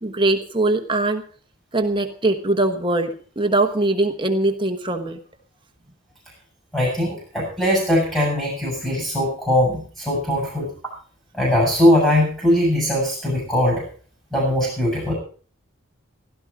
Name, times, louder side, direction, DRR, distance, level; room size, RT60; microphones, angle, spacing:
voice 1, 0.0-1.2 1.7-5.2, right 2 dB, 25° right, 5 dB, 1.2 m, -21 dB
voice 2, 6.7-10.7 11.3-13.8 14.3-15.1, left 1 dB, 5° left, -3 dB, 6.9 m, -20 dB
16.0 x 12.5 x 4.9 m, 0.41 s
head